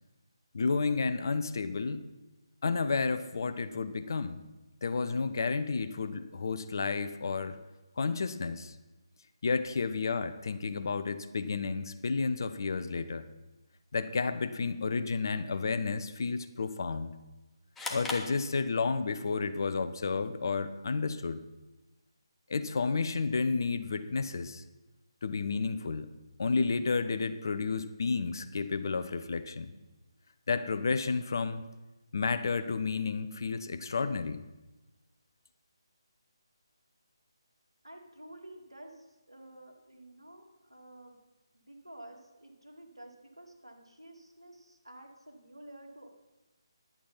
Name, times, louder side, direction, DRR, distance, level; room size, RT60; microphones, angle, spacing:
voice 1, 0.5-2.0 2.6-4.4 4.8-7.6 8.0-8.7 9.4-13.3 13.9-17.1 17.9-21.4 22.5-24.6 25.2-26.1 26.4-29.7 30.5-31.7 32.1-34.5, left 4 dB, 45° left, 11 dB, 0.7 m, -31 dB
sound 1, 17.7-19.2, left 2 dB, 5° left, 0.7 m, -39 dB
voice 2, 37.8-41.2 41.5-46.1, right 1 dB, 80° right, 2 dB, 2.3 m, -51 dB
10.5 x 8.6 x 5.6 m, 1.1 s
figure-of-eight pair, 150°, 3 cm